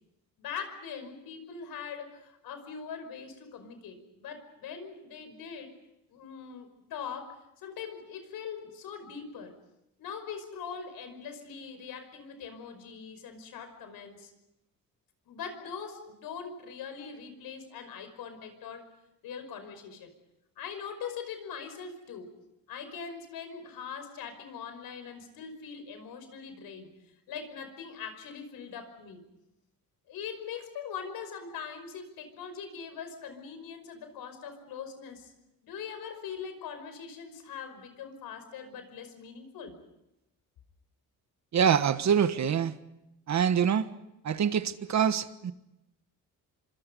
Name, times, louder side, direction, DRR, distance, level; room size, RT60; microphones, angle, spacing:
voice 1, 0.4-5.7 6.1-9.5 10.0-14.3 15.3-18.9 19.2-20.1 20.6-22.4 22.7-29.2 30.1-35.3 35.6-39.8, left 6 dB, 90° left, 5.5 m, -42 dB
voice 2, 41.5-42.7 43.3-43.9 44.2-45.5, right 8 dB, 50° right, 1.4 m, -25 dB
28.0 x 25.5 x 5.4 m
cardioid pair, 135°, 35 cm